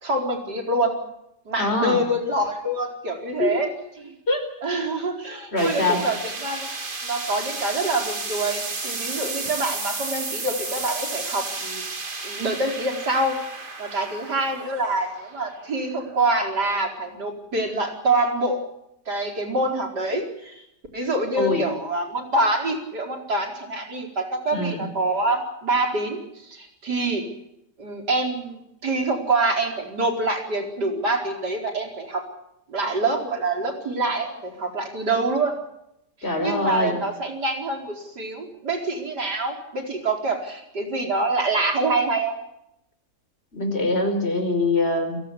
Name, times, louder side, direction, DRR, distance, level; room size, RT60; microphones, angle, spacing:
voice 1, 0.0-1.0 1.5-3.7 4.0-4.1 4.6-6.7 7.0-11.8 12.2-13.4 13.8-18.6 19.1-20.6 20.9-27.2 27.8-32.3 32.7-35.6 36.4-42.4, right 2 dB, 90° right, 3 dB, 5.1 m, -26 dB
voice 2, 1.6-2.0 3.4-3.7 4.3-4.4 5.5-6.0 21.3-21.7 24.5-24.9 36.2-37.0 43.5-45.2, left 2 dB, 40° left, 6 dB, 4.9 m, -23 dB
sound 1, 5.6-16.7, right 3 dB, 30° right, 2.0 m, -33 dB
29.0 x 17.5 x 6.9 m, 0.82 s
omnidirectional pair, 1.7 m